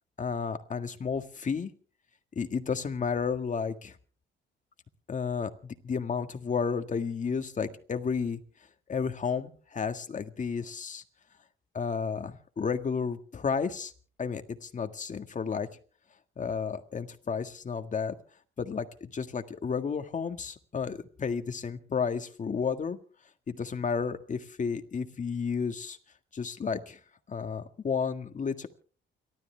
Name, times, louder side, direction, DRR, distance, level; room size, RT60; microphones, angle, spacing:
voice 1, 0.2-1.7 2.4-3.9 5.1-8.4 8.9-11.0 11.7-13.9 14.2-15.7 16.4-18.1 18.6-23.0 23.5-26.0 26.3-27.0 27.3-28.7, left 6 dB, 40° left, 7 dB, 1.8 m, -32 dB
29.0 x 13.0 x 3.4 m, 0.41 s
cardioid pair, 90°, 20 cm